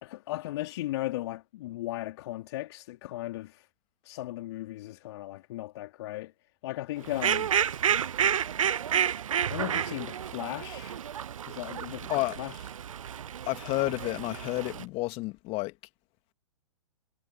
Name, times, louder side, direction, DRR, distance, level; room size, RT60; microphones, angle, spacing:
voice 1, 0.0-3.7 4.0-6.3 6.6-7.5 9.5-11.0 11.5-12.1 12.4-12.6, left 16 dB, 50° left, 3.7 m, -36 dB
Fowl, 7.0-14.8, right 9 dB, 65° right, 0.8 m, -30 dB
voice 2, 13.5-15.7, left 23 dB, 30° left, 2.3 m, -30 dB
figure-of-eight pair, 115°, 18 cm